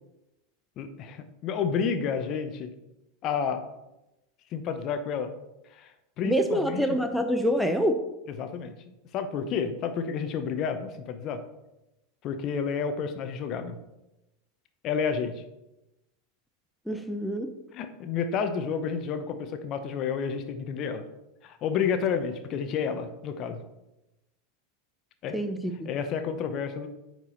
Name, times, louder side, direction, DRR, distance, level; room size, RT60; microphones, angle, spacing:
voice 1, 0.8-2.7 3.2-3.6 4.5-5.3 5.7-6.9 8.4-11.4 12.2-13.8 14.8-15.4 17.7-21.0 21.4-23.6 25.2-25.4 25.8-26.9, left 6 dB, 40° left, 8 dB, 0.9 m, -30 dB
voice 2, 6.2-8.0 16.9-17.5 25.3-25.9, equal, ahead, 5 dB, 0.6 m, -26 dB
9.7 x 4.7 x 4.1 m, 0.93 s
figure-of-eight pair, 85°, 0 cm